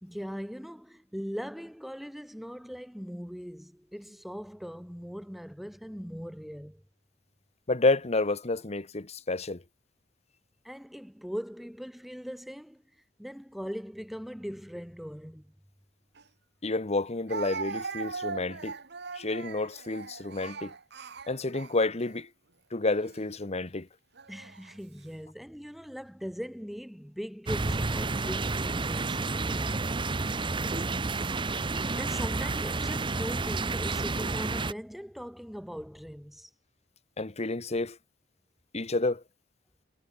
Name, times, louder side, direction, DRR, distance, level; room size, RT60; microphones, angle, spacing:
voice 1, 0.0-6.8 10.6-12.8 13.2-15.5 24.3-29.8 32.0-36.5, equal, ahead, 1.0 m, -40 dB
voice 2, 7.7-9.6 16.6-18.8 19.1-20.7 21.3-22.3 22.7-23.9 37.2-38.0 38.7-39.2, left 2 dB, 35° left, 1.2 m, -29 dB
Speech, 16.2-16.3 17.3-22.2 22.9-23.2 24.2-24.7, right 4 dB, 60° right, 2.0 m, -39 dB
sound 1, 27.5-34.7, right 3 dB, 25° right, 0.8 m, -30 dB
head